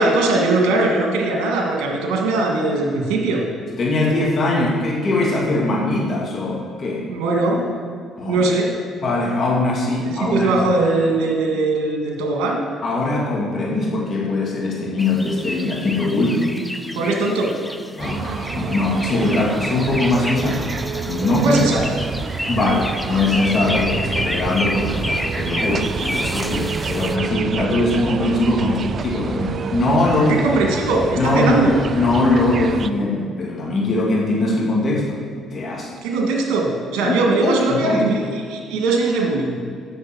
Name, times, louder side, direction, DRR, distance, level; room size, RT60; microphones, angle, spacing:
voice 1, 0.0-3.4 7.1-7.7 8.3-8.7 10.2-12.6 16.9-17.5 21.4-21.8 30.2-31.8 36.0-38.2 38.5-39.6, right 2 dB, 80° right, 1 dB, 1.6 m, -20 dB
voice 2, 3.8-7.0 8.2-8.4 9.0-10.5 12.8-16.5 18.0-20.7 21.1-21.7 22.5-30.4 31.2-31.6 31.9-35.2 35.5-35.9 37.0-37.2 37.4-38.0, left 2 dB, 45° left, -2 dB, 2.3 m, -21 dB
sound 1, 15.0-27.2, left 1 dB, 5° left, 0.5 m, -30 dB
sound 2, 18.0-32.9, right 6 dB, 45° right, 0.3 m, -28 dB
7.6 x 6.6 x 6.0 m, 2.1 s
supercardioid pair, 80°, 0 cm